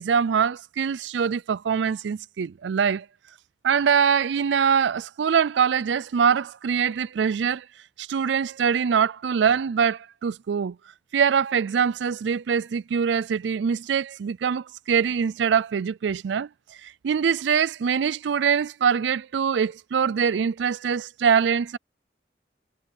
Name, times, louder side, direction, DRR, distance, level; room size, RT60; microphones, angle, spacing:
voice 1, 0.0-3.1 3.6-7.6 8.0-10.8 11.1-16.5 16.8-21.8, right 7 dB, 85° right, 0.4 m, -23 dB
head